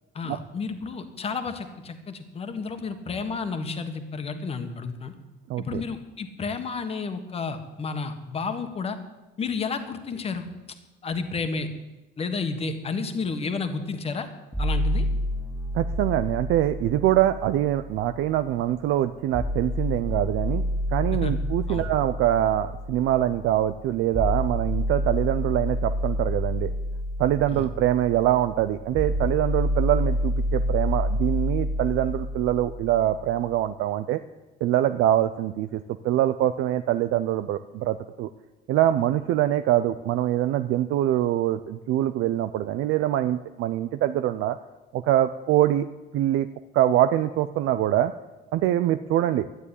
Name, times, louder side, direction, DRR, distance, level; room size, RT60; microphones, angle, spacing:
voice 1, 0.1-5.1 5.6-9.0 9.4-10.4 11.0-11.7 12.2-14.3 14.6-15.1 21.2-21.3 21.7-21.9 27.5-27.7, left 4 dB, 30° left, 8 dB, 1.5 m, -31 dB
voice 2, 5.5-5.8 15.7-20.6 20.9-26.7 27.2-34.2 34.6-38.3 38.7-44.6 44.9-45.8 46.1-46.5 46.7-48.1 48.5-49.5, right 13 dB, 75° right, 10 dB, 0.6 m, -24 dB
sound 1, 14.5-18.5 19.3-33.4, equal, 5° right, 2.3 m, -29 dB
12.5 x 9.7 x 9.9 m, 1.1 s
cardioid pair, 160°, 21 cm